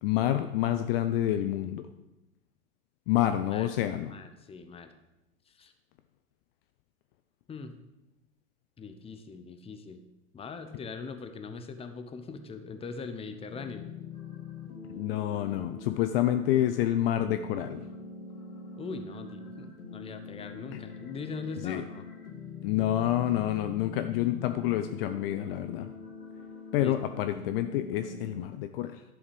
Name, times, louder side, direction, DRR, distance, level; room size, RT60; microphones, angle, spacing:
voice 1, 0.0-1.9 3.1-4.1 14.9-17.9 20.7-20.8 21.6-21.8 22.6-25.9 26.7-29.0, left 12 dB, 40° left, 10 dB, 0.6 m, -28 dB
voice 2, 3.2-3.7 4.1-4.9 5.5-5.7 7.5-7.7 8.8-10.0 10.3-13.9 18.8-22.1 26.8-26.9, left 4 dB, 15° left, 8 dB, 0.8 m, -41 dB
sound 1, 13.5-28.4, left 5 dB, 80° left, 1.7 m, -44 dB
11.0 x 7.1 x 5.2 m, 0.95 s
figure-of-eight pair, 95°, 43 cm